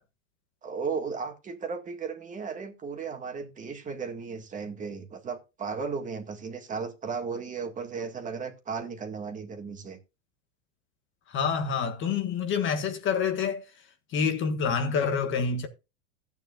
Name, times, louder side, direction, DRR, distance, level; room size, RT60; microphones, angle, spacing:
voice 1, 0.6-10.0, right 5 dB, 20° right, 2.0 m, -35 dB
voice 2, 11.3-13.6 14.1-15.7, left 6 dB, 30° left, 1.6 m, -27 dB
14.5 x 9.2 x 2.5 m
supercardioid pair, 135°, 39 cm